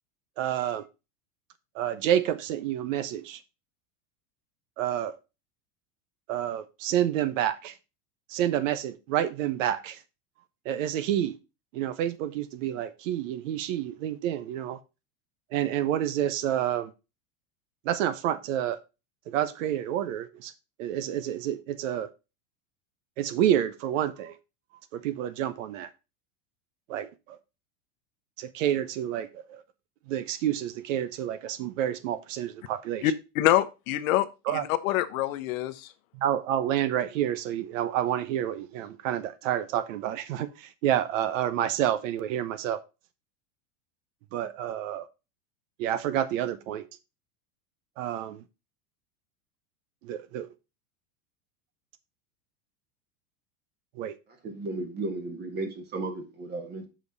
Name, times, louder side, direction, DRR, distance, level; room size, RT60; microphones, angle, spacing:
voice 1, 0.4-0.8 1.7-3.4 4.8-5.1 6.3-7.8 8.3-10.0 10.6-11.3 11.7-14.8 15.5-16.9 17.8-18.8 19.3-20.5 20.8-22.1 23.2-24.3 24.9-25.9 26.9-27.4 28.4-29.6 30.1-33.1 34.5-34.6 36.1-42.8 44.3-45.1 45.8-46.8 48.0-48.4 50.0-50.5 54.0-54.2, right 11 dB, 60° right, 0.8 m, -29 dB
voice 2, 33.0-35.9, left 13 dB, 70° left, 0.9 m, -26 dB
voice 3, 54.4-56.9, right 2 dB, 20° right, 1.5 m, -34 dB
7.5 x 5.3 x 4.0 m
supercardioid pair, 150°, 43 cm